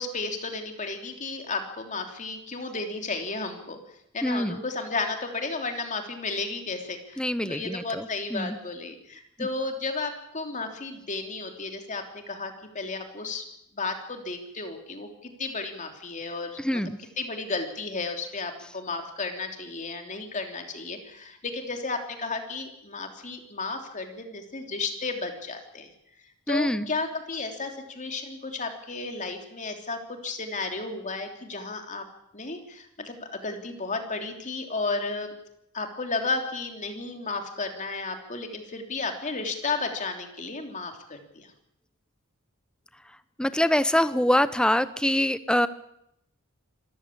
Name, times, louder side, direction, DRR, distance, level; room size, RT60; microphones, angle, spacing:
voice 1, 0.0-3.8 4.1-13.4 13.7-16.8 17.2-25.9 26.5-32.0 32.3-35.3 35.7-41.5, left 3 dB, 35° left, 4 dB, 3.2 m, -33 dB
voice 2, 4.2-4.6 7.2-8.6 9.4-9.5 16.6-17.0 26.5-26.9 43.4-45.7, left 1 dB, 5° left, 13 dB, 0.8 m, -25 dB
26.0 x 14.5 x 8.6 m, 0.80 s
head